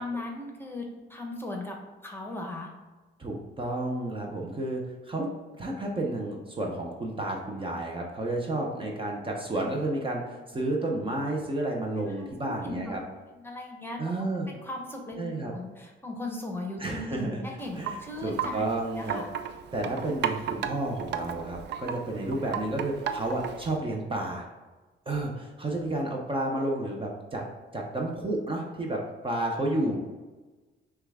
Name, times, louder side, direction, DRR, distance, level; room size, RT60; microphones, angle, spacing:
voice 1, 0.0-1.8 2.0-2.7 12.0-13.0 13.3-18.6 19.0-19.3, left 2 dB, 10° left, 1 dB, 0.9 m, -38 dB
voice 2, 3.2-13.0 14.0-14.5 15.2-15.5 16.8-17.4 17.7-19.2 19.7-24.5 25.1-27.4 27.7-30.0, right 2 dB, 25° right, 0 dB, 0.7 m, -31 dB
Wind chime, 17.6-23.8, right 8 dB, 60° right, 0.4 m, -35 dB
5.8 x 2.3 x 3.5 m, 1.2 s
cardioid pair, 90°, 20 cm